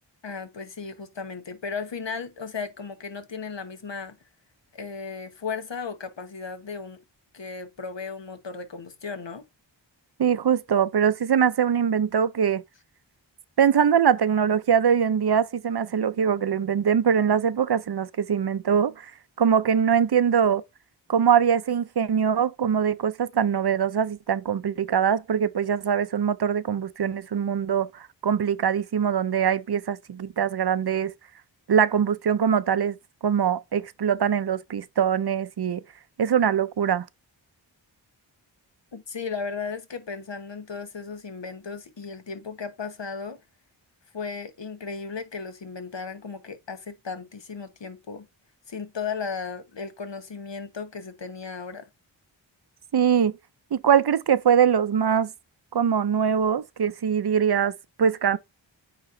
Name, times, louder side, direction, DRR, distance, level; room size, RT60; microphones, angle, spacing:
voice 1, 0.2-4.2 4.7-7.0 7.3-9.4 38.9-43.4 44.1-48.3 48.7-51.9, left 5 dB, 70° left, 1.3 m, -35 dB
voice 2, 10.2-12.6 13.6-19.1 19.4-20.6 21.1-31.1 31.7-33.0 33.2-35.8 36.2-37.1 52.9-53.3 53.7-55.3 55.7-58.4, right 8 dB, 55° right, 0.6 m, -22 dB
9.1 x 3.0 x 3.8 m
wide cardioid pair, 40°, 46 cm